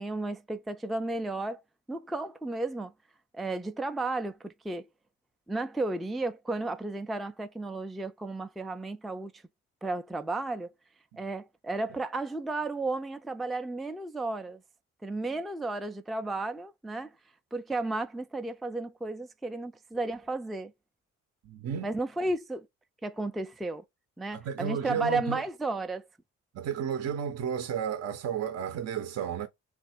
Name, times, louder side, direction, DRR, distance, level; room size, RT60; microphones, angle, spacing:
voice 1, 0.0-1.6 1.9-2.9 3.3-4.9 5.5-9.4 9.8-10.7 11.2-14.6 15.0-17.1 17.5-20.7 21.8-22.7 23.0-23.8 24.2-26.1, right 2 dB, ahead, 0.3 m, -33 dB
voice 2, 21.4-21.9 24.3-25.4 26.5-29.5, right 8 dB, 60° right, 0.7 m, -32 dB
3.1 x 2.5 x 4.2 m
cardioid pair, 90°, 30 cm